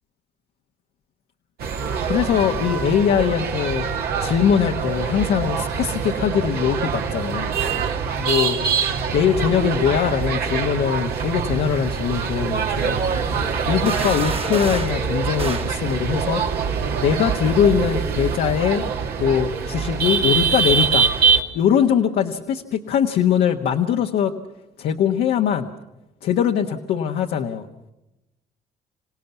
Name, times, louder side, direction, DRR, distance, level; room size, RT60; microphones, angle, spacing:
sound 1, 1.6-21.4, right 6 dB, 70° right, 2.0 m, -24 dB
voice 1, 2.0-3.9 4.2-7.5 8.2-8.6 9.1-13.0 13.6-16.4 17.0-18.8 19.2-21.1 21.5-24.3 24.8-25.7 26.2-27.7, left 8 dB, 70° left, 3 dB, 1.3 m, -21 dB
sound 2, 13.8-15.0 15.4-15.7, right 4 dB, 35° right, 1.7 m, -30 dB
27.5 x 17.5 x 7.0 m, 0.94 s
supercardioid pair, 70°, 17 cm